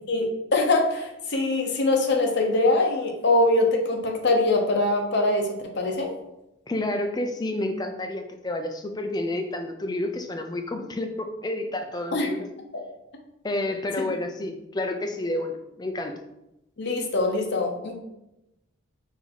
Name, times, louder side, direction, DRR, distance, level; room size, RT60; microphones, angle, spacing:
voice 1, 0.1-6.1 12.1-12.3 16.8-18.0, left 2 dB, 55° left, 2 dB, 0.7 m, -23 dB
voice 2, 6.7-12.5 13.4-16.2, left 1 dB, 20° left, 5 dB, 0.4 m, -30 dB
3.9 x 2.6 x 4.6 m, 0.90 s
head